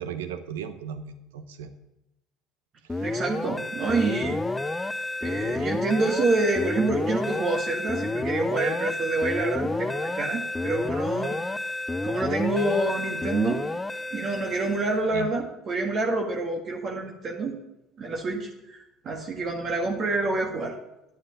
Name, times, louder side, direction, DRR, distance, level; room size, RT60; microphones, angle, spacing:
voice 1, 0.0-1.7 2.9-3.1 5.4-5.7 15.1-15.3, right 8 dB, 90° right, 10 dB, 0.9 m, -36 dB
sound 1, 2.9-15.0, left 2 dB, 15° left, 0.6 m, -30 dB
voice 2, 3.0-4.4 5.2-11.4 12.0-13.6 14.1-17.6 18.0-20.8, right 3 dB, 45° right, 0 dB, 1.8 m, -27 dB
9.6 x 8.7 x 6.9 m, 0.92 s
hypercardioid pair, 75°, 0 cm